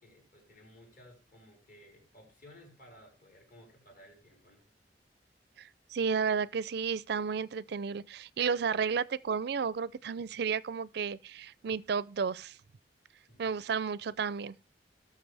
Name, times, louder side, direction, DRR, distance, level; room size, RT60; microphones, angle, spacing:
voice 1, 0.0-4.7 13.3-13.6, equal, 50° left, 5.0 m, -57 dB
voice 2, 5.6-12.6 13.4-14.5, right 6 dB, 65° right, 0.4 m, -32 dB
18.0 x 6.6 x 3.4 m
head